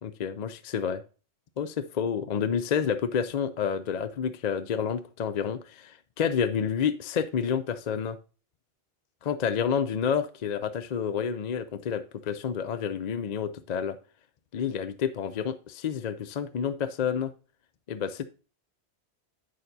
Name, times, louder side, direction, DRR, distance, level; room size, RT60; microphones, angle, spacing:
voice 1, 0.0-1.0 1.6-8.2 9.2-14.0 14.5-17.3 17.9-18.2, left 7 dB, 50° left, 0.5 m, -29 dB
9.0 x 6.4 x 2.7 m
omnidirectional pair, 1.1 m